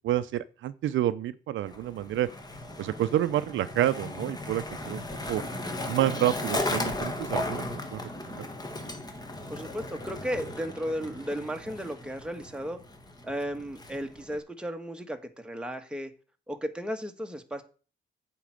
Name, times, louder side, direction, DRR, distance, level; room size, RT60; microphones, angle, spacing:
voice 1, 0.0-2.3 2.8-5.0 5.3-5.4 5.9-8.0 8.3-8.5, right 13 dB, 75° right, 13 dB, 0.6 m, -29 dB
Skateboard, 1.7-14.4, left 2 dB, 20° left, 1.7 m, -36 dB
voice 2, 9.5-12.8 13.2-16.1 16.5-17.6, equal, 5° right, 5 dB, 1.4 m, -34 dB
8.4 x 4.7 x 7.5 m, 0.36 s
cardioid pair, 90°, 20 cm